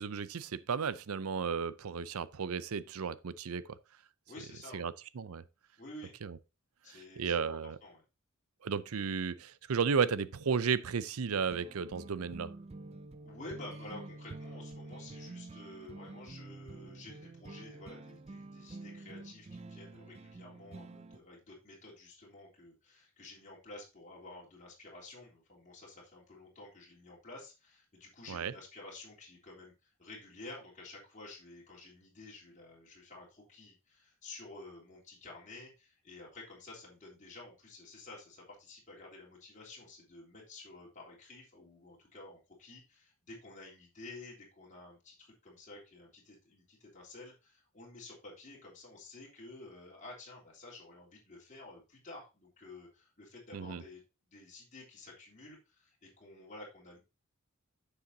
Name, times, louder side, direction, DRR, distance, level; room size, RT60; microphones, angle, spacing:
voice 1, 0.0-3.8 4.7-5.4 6.2-6.4 7.2-7.8 8.6-12.5 28.3-28.5 53.5-53.8, right 6 dB, 85° right, 0.6 m, -34 dB
voice 2, 4.3-4.9 5.8-6.1 6.8-8.0 13.2-57.0, left 2 dB, 35° left, 3.4 m, -51 dB
sound 1, 11.3-21.2, right 2 dB, 30° right, 0.4 m, -48 dB
9.7 x 6.9 x 2.7 m
head